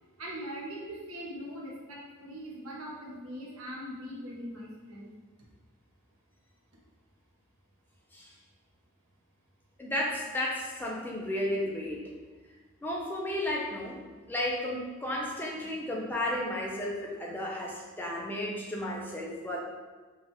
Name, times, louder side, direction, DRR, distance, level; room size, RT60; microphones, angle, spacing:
voice 1, 0.2-5.1, equal, 75° right, -5 dB, 1.0 m, -41 dB
voice 2, 9.8-12.0 12.8-14.0 14.3-19.6, left 1 dB, 10° left, -2 dB, 0.5 m, -33 dB
5.3 x 2.4 x 3.5 m, 1.3 s
head